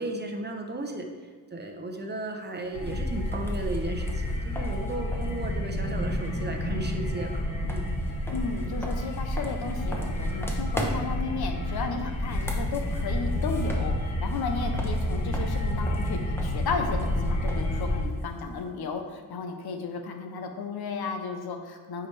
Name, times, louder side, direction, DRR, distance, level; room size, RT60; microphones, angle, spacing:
voice 1, 0.0-7.9, right 2 dB, 30° right, 3 dB, 0.7 m, -35 dB
sound 1, 2.6-18.7, equal, 5° left, 0.8 m, -41 dB
sound 2, 2.7-18.0, left 1 dB, 55° left, 1.3 m, -29 dB
voice 2, 8.3-22.1, left 4 dB, 80° left, 5 dB, 0.8 m, -34 dB
8.6 x 4.8 x 3.3 m, 1.5 s
wide cardioid pair, 115°, 37 cm